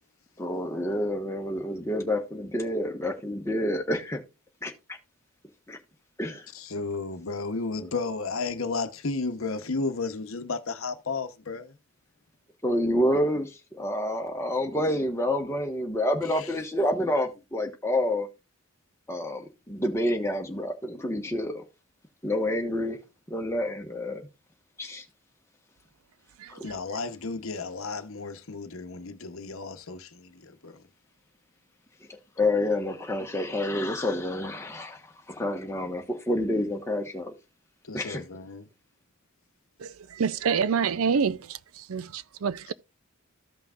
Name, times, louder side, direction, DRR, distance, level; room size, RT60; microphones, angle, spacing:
voice 1, 0.4-4.2 4.6-5.0 5.7-5.8 6.2-6.4 7.8-7.9 12.6-18.3 19.1-21.6 22.2-23.0 23.3-24.2 24.8-25.0 26.5-26.6 32.1-35.0 35.3-37.3 37.9-38.2, left 1 dB, 15° left, 1.3 m, -28 dB
voice 2, 6.5-11.8 16.3-16.5 26.6-30.8 37.8-38.7, left 3 dB, 65° left, 0.9 m, -33 dB
voice 3, 40.2-41.6 41.9-42.7, right 6 dB, 70° right, 0.5 m, -26 dB
14.5 x 5.7 x 2.4 m
head